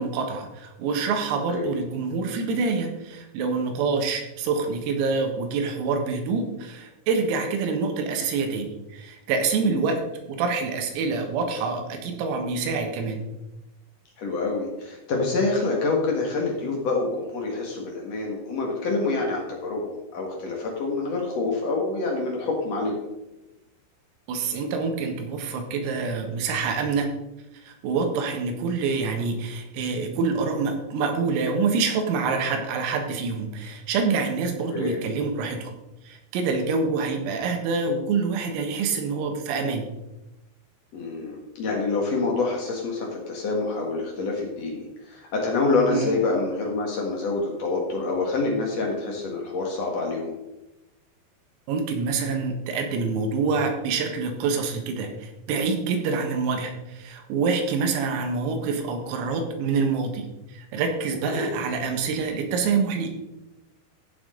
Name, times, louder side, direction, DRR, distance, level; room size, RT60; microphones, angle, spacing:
voice 1, 0.0-13.2 24.3-27.1 27.7-35.7 36.1-39.9 45.9-46.1 51.7-63.1, right 4 dB, 85° right, 4 dB, 4.2 m, -26 dB
voice 2, 14.2-23.0 34.7-35.0 40.9-50.3 61.3-61.5, left 3 dB, 75° left, -1 dB, 1.5 m, -27 dB
15.5 x 7.2 x 3.9 m, 0.96 s
omnidirectional pair, 6.0 m